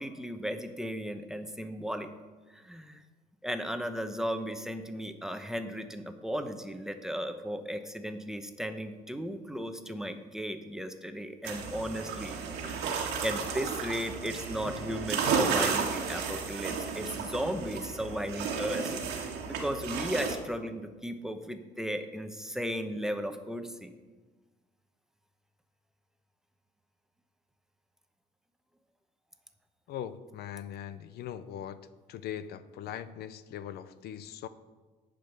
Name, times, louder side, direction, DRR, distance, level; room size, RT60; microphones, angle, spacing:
voice 1, 0.0-2.1 2.5-3.0 3.4-23.9, equal, 5° right, 7 dB, 0.9 m, -36 dB
sound 1, 11.4-20.4, right 5 dB, 85° right, 1.7 m, -33 dB
voice 2, 29.9-31.8 32.1-34.5, left 10 dB, 70° left, 13 dB, 0.6 m, -40 dB
11.0 x 5.2 x 8.0 m, 1.3 s
cardioid pair, 110°, 17 cm